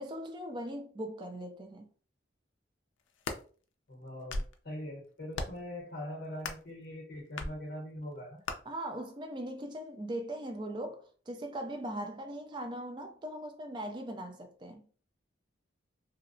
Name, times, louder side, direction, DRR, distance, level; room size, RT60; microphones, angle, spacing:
voice 1, 0.0-1.9 8.7-14.8, right 1 dB, 25° right, 0.3 m, -40 dB
sound 1, 3.0-3.4 4.1-4.6 5.3-5.7 6.4-6.7 7.4-7.6 8.5-8.6, left 3 dB, 80° left, 0.4 m, -37 dB
voice 2, 3.9-8.4, left 1 dB, 50° left, 0.8 m, -42 dB
2.7 x 2.0 x 2.5 m
head